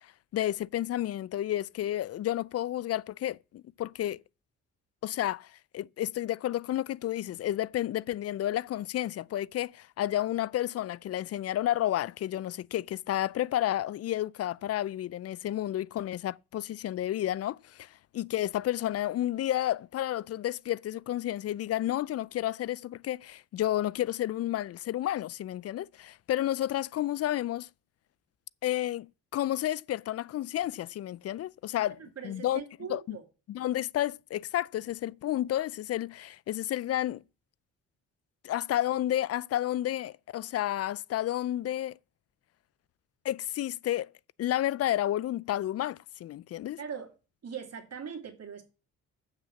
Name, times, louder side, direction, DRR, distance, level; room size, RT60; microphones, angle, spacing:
voice 1, 0.0-4.2 5.0-27.7 28.6-32.6 32.9-33.2 33.5-37.2 38.4-42.0 43.2-44.1 44.4-46.8, left 13 dB, 50° left, 0.4 m, -31 dB
voice 2, 32.0-33.2 46.8-47.1 47.4-48.6, right 7 dB, 50° right, 2.5 m, -41 dB
7.4 x 6.4 x 7.3 m
cardioid pair, 70°, 32 cm